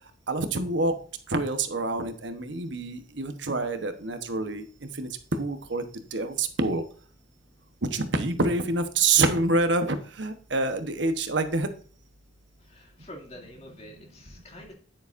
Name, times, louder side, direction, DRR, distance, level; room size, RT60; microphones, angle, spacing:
voice 1, 0.3-0.9 1.3-4.6 5.0-5.1 5.4-6.8 7.8-11.7, right 3 dB, 65° right, 8 dB, 1.1 m, -26 dB
voice 2, 12.6-14.7, left 1 dB, 35° left, 1 dB, 2.5 m, -46 dB
9.8 x 8.9 x 2.6 m, 0.44 s
head